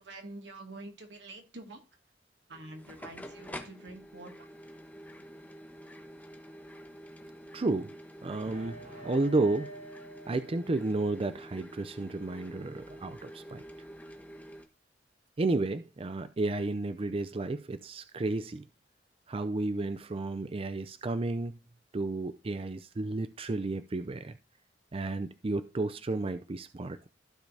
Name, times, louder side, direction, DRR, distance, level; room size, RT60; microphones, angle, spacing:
voice 1, 0.0-1.8 2.5-4.5, right 2 dB, 85° right, 2.2 m, -47 dB
sound 1, 2.5-14.7, equal, 10° left, 1.1 m, -48 dB
voice 2, 7.5-8.0 8.2-8.8 9.0-9.8 10.3-13.6 15.4-18.7 19.3-21.5 21.9-24.4 24.9-27.1, right 2 dB, 30° right, 0.5 m, -32 dB
sound 2, 8.4-11.1, right 1 dB, 50° right, 3.4 m, -48 dB
15.0 x 5.1 x 2.7 m
head